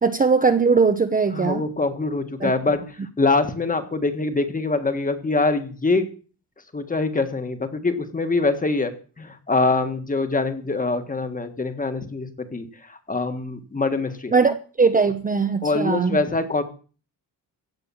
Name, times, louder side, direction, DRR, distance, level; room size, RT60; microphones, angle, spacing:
voice 1, 0.0-1.6 2.4-2.5 14.3-16.2, right 4 dB, 20° right, 9 dB, 0.8 m, -20 dB
voice 2, 1.3-6.1 6.7-14.3 15.6-16.6, left 3 dB, 20° left, 9 dB, 1.6 m, -24 dB
16.0 x 8.9 x 7.1 m, 0.38 s
wide cardioid pair, 175°, 40 cm